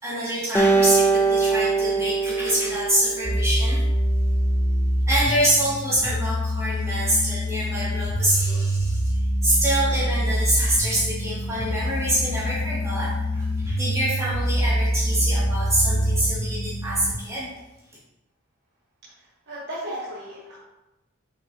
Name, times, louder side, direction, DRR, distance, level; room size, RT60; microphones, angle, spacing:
voice 1, 0.0-3.8 5.1-9.1 9.4-17.5, right 1 dB, 15° right, -8 dB, 2.5 m, -25 dB
Acoustic guitar, 0.5-3.9, right 4 dB, 10° left, 0.6 m, -22 dB
sound 1, 3.2-17.1, equal, 30° left, 1.6 m, -25 dB
voice 2, 19.5-20.6, equal, 55° right, -6 dB, 1.2 m, -34 dB
7.1 x 5.9 x 2.9 m, 1.0 s
head